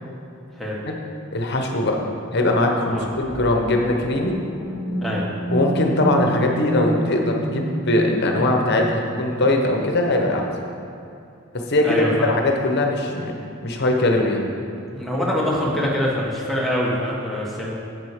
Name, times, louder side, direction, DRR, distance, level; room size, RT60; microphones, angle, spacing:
voice 1, 1.3-2.0 2.3-4.4 5.5-10.5 11.5-13.3 13.6-14.5, left 1 dB, 55° left, 2 dB, 1.1 m, -21 dB
sound 1, 2.9-10.6, equal, 50° right, 2.4 m, -30 dB
voice 2, 11.8-12.3 14.9-17.7, left 1 dB, ahead, -5 dB, 1.5 m, -24 dB
8.4 x 7.5 x 5.0 m, 2.7 s
head